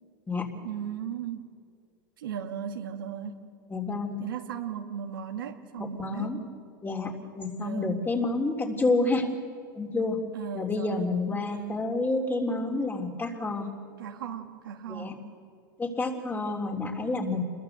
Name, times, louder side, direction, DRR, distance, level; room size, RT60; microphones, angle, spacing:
voice 1, 0.6-1.5 2.2-3.4 4.2-6.3 7.6-8.0 10.3-11.9 14.0-15.2, right 8 dB, 85° right, 4 dB, 2.3 m, -37 dB
voice 2, 3.7-4.2 5.8-6.4 6.8-9.3 9.7-10.2 10.5-13.7 14.9-15.2 15.8-17.4, left 3 dB, 20° left, 3 dB, 3.5 m, -29 dB
27.0 x 21.5 x 8.1 m, 2.3 s
hypercardioid pair, 105°, 11 cm